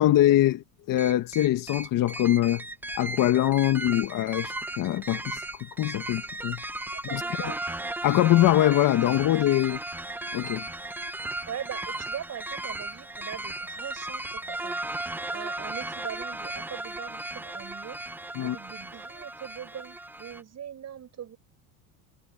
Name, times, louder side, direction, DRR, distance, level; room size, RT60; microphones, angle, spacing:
voice 1, 0.0-2.6 3.0-5.4 5.8-6.6 7.1-7.2 8.0-9.8 10.3-10.6 18.4-18.6, left 14 dB, 45° left, 1.7 m, -23 dB
sound 1, 1.0-20.4, right 2 dB, 5° right, 0.8 m, -36 dB
voice 2, 7.1-7.6 9.6-9.8 11.5-14.8 15.3-18.0 18.4-21.4, right 9 dB, 35° right, 7.7 m, -41 dB
supercardioid pair, 120°, 44 cm